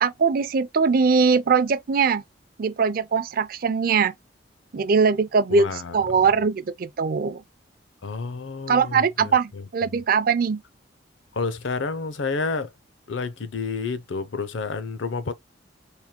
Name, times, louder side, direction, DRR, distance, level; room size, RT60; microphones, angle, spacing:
voice 1, 0.0-2.2 2.6-4.1 4.7-5.7 5.9-7.4 8.7-10.6, right 5 dB, 50° right, 0.4 m, -21 dB
voice 2, 5.5-6.0 8.0-9.9 11.3-12.7 13.1-15.3, left 4 dB, 80° left, 0.6 m, -30 dB
4.3 x 3.4 x 2.2 m
head